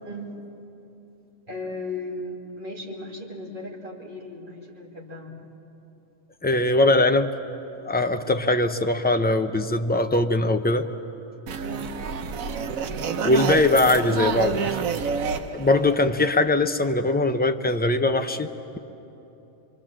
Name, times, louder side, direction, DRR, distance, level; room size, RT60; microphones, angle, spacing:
voice 1, 0.0-0.3 1.5-5.4 11.6-11.9, left 2 dB, 40° right, -2 dB, 2.9 m, -36 dB
voice 2, 6.4-7.3 7.8-10.9 13.2-14.7 15.5-18.8, left 2 dB, 15° left, 6 dB, 0.4 m, -21 dB
sound 1, 11.5-16.6, right 6 dB, 85° right, 1.3 m, -28 dB
26.0 x 24.0 x 7.5 m, 3.0 s
omnidirectional pair, 1.4 m